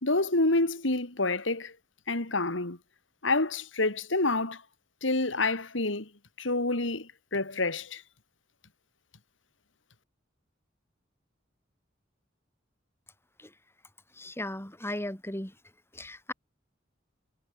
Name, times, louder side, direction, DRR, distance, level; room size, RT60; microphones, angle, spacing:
voice 1, 0.0-1.7 2.1-2.8 3.2-4.6 5.0-6.1 6.4-8.0, left 2 dB, 75° left, 2.9 m, -28 dB
voice 2, 14.2-15.5 15.9-16.3, left 1 dB, 15° left, 4.5 m, -36 dB
head